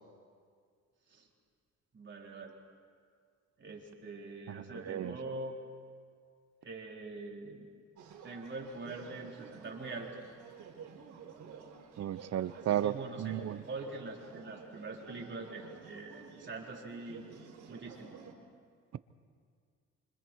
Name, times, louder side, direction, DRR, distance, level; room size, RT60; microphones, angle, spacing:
voice 1, 1.9-2.6 3.6-5.6 6.6-7.7 8.2-10.1 12.5-17.2 17.7-18.1, right 3 dB, 40° right, -1 dB, 4.1 m, -43 dB
voice 2, 4.5-5.1 12.0-12.9 13.2-13.6, right 11 dB, 55° right, 16 dB, 0.8 m, -34 dB
sound 1, 8.0-18.3, right 6 dB, 75° right, 4.1 m, -51 dB
29.0 x 26.0 x 4.7 m, 2.1 s
cardioid pair, 90°, 30 cm